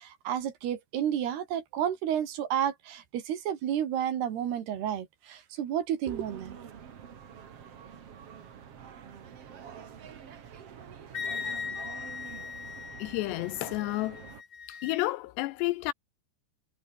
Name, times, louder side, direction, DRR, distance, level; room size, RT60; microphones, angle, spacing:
voice 1, 0.0-6.6, right 10 dB, 65° right, 4.0 m, -31 dB
sound 1, 6.0-14.4, right 8 dB, 45° right, 2.1 m, -47 dB
Wind instrument woodwind instrument, 11.1-15.0, left 6 dB, 45° left, 1.4 m, -39 dB
voice 2, 13.0-14.2 14.7-15.9, left 19 dB, 80° left, 2.6 m, -31 dB
omnidirectional pair, 5.2 m